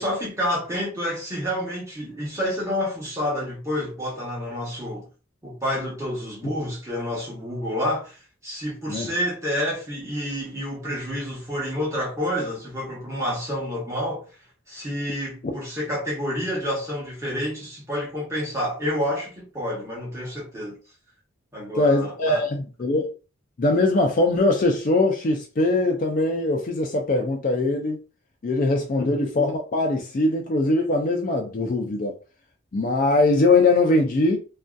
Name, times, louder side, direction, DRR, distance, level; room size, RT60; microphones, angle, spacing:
voice 1, 0.0-5.1 5.4-8.2 8.4-14.3 14.7-20.8 21.5-22.4 29.0-29.1, equal, 15° right, 0.9 m, -29 dB
voice 2, 21.7-23.1 23.6-28.0 28.4-32.1 32.7-34.4, left 2 dB, 40° left, 0.4 m, -21 dB
2.6 x 2.3 x 2.2 m
head